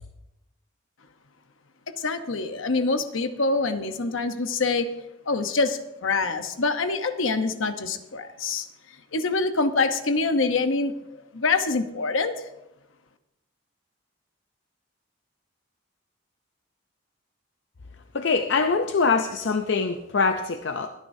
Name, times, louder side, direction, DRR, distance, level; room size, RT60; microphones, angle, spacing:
voice 1, 2.0-4.9 5.3-8.7 9.1-12.4, left 3 dB, 75° left, 8 dB, 0.9 m, -25 dB
voice 2, 18.1-20.9, left 4 dB, 60° left, 6 dB, 0.6 m, -23 dB
23.0 x 9.8 x 2.7 m, 0.92 s
head